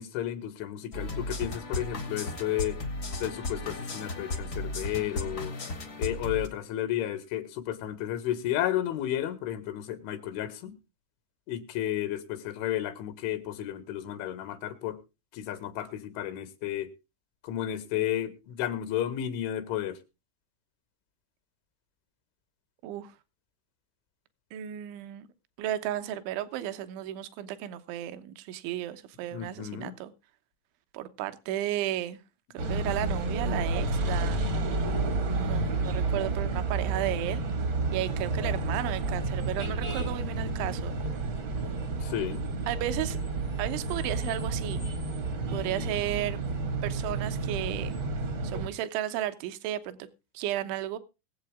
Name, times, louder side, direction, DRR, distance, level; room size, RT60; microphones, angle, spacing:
voice 1, 0.0-2.8 3.2-5.6 6.0-10.7 11.5-15.0 15.3-16.9 17.4-20.0 29.3-29.9 42.0-42.5, left 12 dB, 90° left, 4.0 m, -32 dB
sound 1, 0.9-6.5, left 2 dB, 75° left, 0.8 m, -35 dB
voice 2, 24.5-25.3 25.6-30.1 30.9-32.2 32.5-34.4 35.3-37.4 37.9-40.9 42.7-43.2 43.6-44.8 45.5-46.4 46.8-48.0 48.4-50.0 50.3-51.0, right 13 dB, 80° right, 3.4 m, -34 dB
sound 2, 32.6-48.7, right 3 dB, 60° right, 1.2 m, -30 dB
22.0 x 8.1 x 3.6 m
omnidirectional pair, 5.3 m